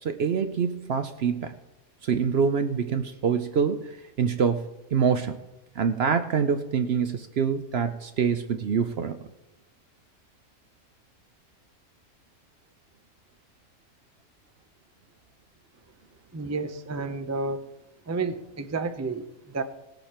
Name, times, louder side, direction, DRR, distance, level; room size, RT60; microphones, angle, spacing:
voice 1, 0.0-1.5 2.0-3.9 4.2-4.6 4.9-5.3 5.8-9.2, right 6 dB, 60° right, 9 dB, 0.7 m, -25 dB
voice 2, 16.3-17.6 18.1-19.6, right 3 dB, 20° right, 8 dB, 0.4 m, -31 dB
18.5 x 7.9 x 4.3 m, 1.0 s
omnidirectional pair, 1.5 m